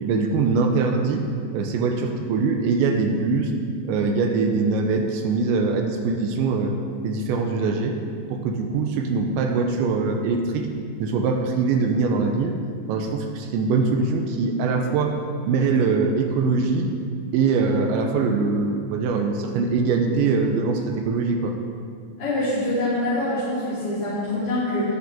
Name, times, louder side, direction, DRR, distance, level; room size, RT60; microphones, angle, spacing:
voice 1, 0.0-1.2 1.5-3.5 3.9-6.7 7.0-8.0 8.3-10.7 11.0-12.6 12.9-15.2 15.5-16.9 17.3-21.5, right 4 dB, 80° right, 4 dB, 2.9 m, -22 dB
voice 2, 22.2-24.9, left 1 dB, 25° left, -14 dB, 3.2 m, -25 dB
20.0 x 6.6 x 3.7 m, 2.3 s
omnidirectional pair, 5.3 m